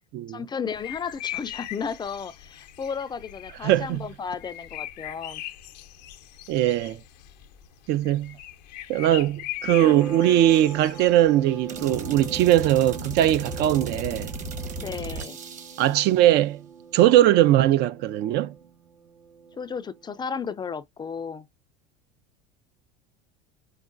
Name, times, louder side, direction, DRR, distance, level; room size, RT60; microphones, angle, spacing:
voice 1, 0.3-5.4 14.8-15.4 19.6-21.5, left 6 dB, 20° left, 0.4 m, -33 dB
sound 1, 0.7-12.4, left 13 dB, 85° left, 0.6 m, -40 dB
voice 2, 3.6-4.1 6.5-7.0 7.9-8.4 8.9-14.3 15.8-16.6 16.9-18.5, right 13 dB, 55° right, 0.4 m, -20 dB
sound 2, 9.8-20.1, right 5 dB, 80° right, 1.1 m, -41 dB
sound 3, 11.7-16.1, right 2 dB, 40° right, 1.0 m, -36 dB
4.8 x 2.1 x 2.4 m
supercardioid pair, 105°, 21 cm